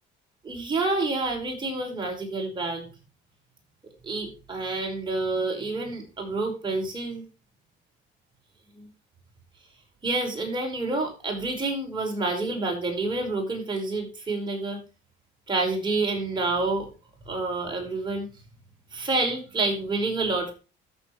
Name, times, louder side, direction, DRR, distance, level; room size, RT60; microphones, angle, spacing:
voice 1, 0.4-2.8 4.0-7.2 8.7-8.9 10.0-14.8 15.5-16.9 17.2-18.3 18.9-20.5, right 3 dB, 25° right, 0 dB, 5.1 m, -28 dB
14.0 x 7.1 x 3.2 m, 0.31 s
cardioid pair, 115°, 20 cm